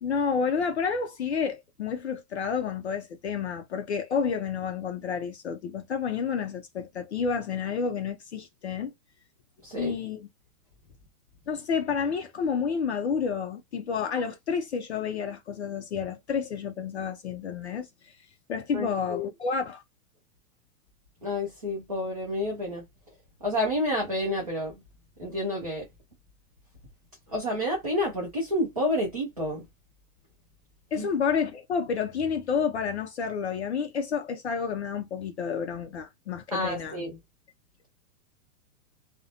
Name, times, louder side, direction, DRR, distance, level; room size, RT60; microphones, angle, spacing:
voice 1, 0.0-8.9 9.8-10.3 11.5-18.1 18.5-19.8 30.9-37.0, left 6 dB, 50° left, 0.5 m, -30 dB
voice 2, 9.6-10.0 18.7-19.3 21.2-22.8 23.4-24.8 25.2-25.9 27.3-29.6 31.0-31.1 36.5-37.2, left 1 dB, 25° right, 0.4 m, -29 dB
2.5 x 2.0 x 2.7 m
hypercardioid pair, 175°, 46 cm